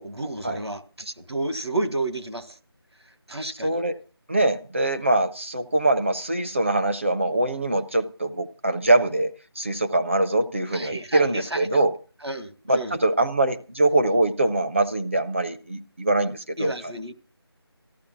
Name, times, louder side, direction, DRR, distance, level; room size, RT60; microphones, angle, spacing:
voice 1, 0.0-2.6 3.3-3.8 10.7-11.9 12.2-13.0 16.6-17.1, right 2 dB, 85° right, 1.9 m, -31 dB
voice 2, 3.6-4.0 4.3-11.9 12.7-16.9, right 2 dB, 30° right, 0.6 m, -23 dB
14.0 x 12.5 x 5.9 m
figure-of-eight pair, 170°, 14 cm